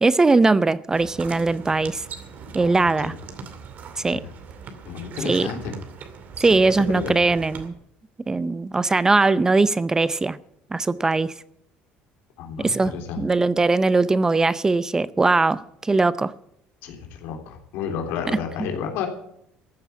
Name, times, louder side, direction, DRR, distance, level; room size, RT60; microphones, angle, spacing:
voice 1, 0.0-2.0 2.5-3.1 4.0-4.2 5.2-5.5 6.4-7.7 8.3-10.4 10.7-11.3 12.6-16.3 18.3-18.4, right 3 dB, 15° right, 0.5 m, -20 dB
sound 1, 0.9-7.7, right 6 dB, 50° right, 2.4 m, -40 dB
voice 2, 2.6-3.1 4.1-4.2 4.9-5.7 6.7-7.1 12.4-13.2 16.8-19.1, left 7 dB, 75° left, 3.4 m, -31 dB
14.5 x 9.1 x 8.4 m
cardioid pair, 120°, 4 cm